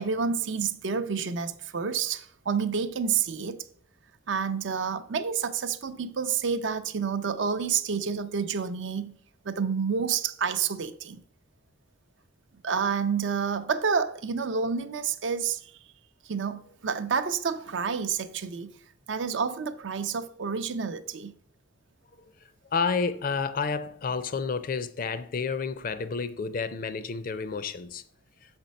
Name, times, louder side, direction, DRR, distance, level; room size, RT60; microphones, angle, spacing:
voice 1, 0.0-3.6 4.3-9.2 9.4-11.2 12.6-15.7 16.2-18.7 19.1-21.3, right 6 dB, 70° right, 0.5 m, -29 dB
voice 2, 22.7-28.0, left 5 dB, 45° left, 0.4 m, -30 dB
6.3 x 4.3 x 5.2 m
head